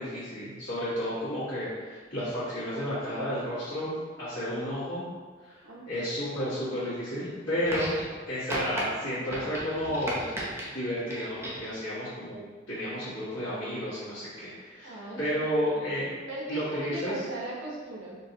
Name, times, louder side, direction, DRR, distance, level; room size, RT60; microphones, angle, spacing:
voice 1, 0.0-3.9 4.2-5.0 5.5-5.6 5.9-7.9 8.3-10.2 10.7-16.1 16.5-17.1, equal, 90° left, -14 dB, 1.4 m, -32 dB
voice 2, 5.6-6.1 14.8-16.0 16.3-18.2, right 1 dB, 80° right, -5 dB, 0.9 m, -38 dB
sound 1, 7.6-8.2 8.5-8.8 9.3-10.7 11.1-11.7 12.8-12.9, right 1 dB, 15° right, 0.6 m, -35 dB
4.4 x 2.8 x 2.8 m, 1.4 s
head